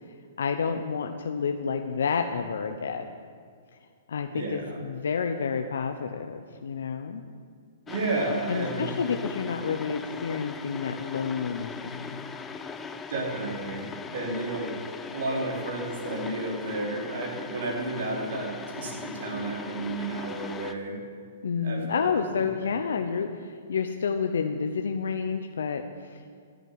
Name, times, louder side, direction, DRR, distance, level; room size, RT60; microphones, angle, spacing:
voice 1, 0.4-3.1 4.1-7.2 8.5-12.4 21.4-26.3, left 6 dB, 80° left, 6 dB, 0.8 m, -30 dB
voice 2, 4.3-4.8 7.9-8.9 13.1-14.7 15.1-21.0 21.6-22.1, right 2 dB, 65° right, 0 dB, 4.1 m, -32 dB
sound 1, 7.9-20.7, left 5 dB, 15° left, 0.8 m, -39 dB
13.5 x 8.1 x 9.7 m, 2.2 s
hypercardioid pair, 130°, 0 cm